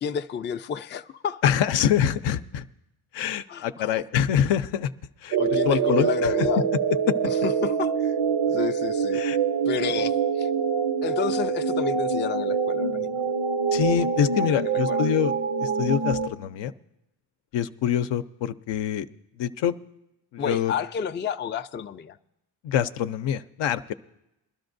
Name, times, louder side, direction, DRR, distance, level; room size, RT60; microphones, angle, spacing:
voice 1, 0.0-1.5 3.5-3.9 5.4-6.7 7.2-8.2 8.5-9.2 9.7-10.5 11.0-13.2 14.4-15.1 20.4-22.2, left 7 dB, 25° left, 8 dB, 0.4 m, -31 dB
voice 2, 1.4-2.6 3.1-4.9 5.2-5.4 5.6-6.3 7.1-7.2 9.1-9.4 13.7-15.3 15.6-16.7 17.5-19.1 19.4-19.8 20.3-20.7 22.6-23.9, left 9 dB, 75° left, 9 dB, 0.6 m, -25 dB
sound 1, 5.3-16.3, right 6 dB, 75° right, 0.8 m, -25 dB
21.5 x 12.0 x 2.6 m, 0.89 s
cardioid pair, 65°, 44 cm